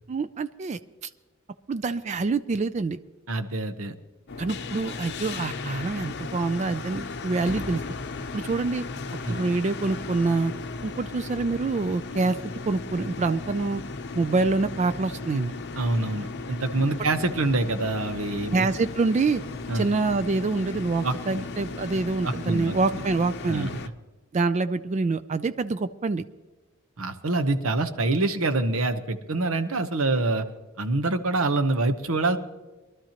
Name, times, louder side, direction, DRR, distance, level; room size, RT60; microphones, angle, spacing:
voice 1, 0.1-1.1 1.7-3.0 4.4-7.8 8.3-8.8 9.3-10.5 10.8-12.4 12.7-13.8 14.1-15.5 18.5-19.4 19.7-23.8 24.3-26.2, right 3 dB, 35° right, 13 dB, 0.3 m, -26 dB
voice 2, 3.3-4.0 9.2-9.4 15.8-18.7 19.7-19.9 21.0-21.4 22.2-23.0 23.5-23.7 27.0-30.5 30.8-32.4, right 2 dB, 80° right, 9 dB, 0.9 m, -26 dB
sound 1, 4.3-23.9, left 3 dB, 55° left, 0.7 m, -36 dB
23.5 x 12.5 x 2.9 m, 1.2 s
head